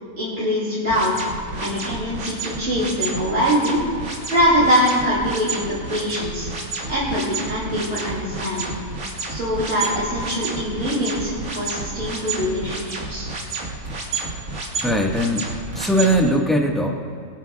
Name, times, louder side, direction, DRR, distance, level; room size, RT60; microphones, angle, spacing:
voice 1, 0.2-1.1 1.6-3.8 4.3-6.5 6.9-8.7 9.3-13.3, equal, 50° right, -8 dB, 3.1 m, -23 dB
sound 1, 0.9-16.2, right 3 dB, 65° right, 2.1 m, -30 dB
voice 2, 14.8-15.5 15.7-16.9, equal, ahead, 0 dB, 1.3 m, -19 dB
23.0 x 12.0 x 2.4 m, 2.3 s
omnidirectional pair, 1.5 m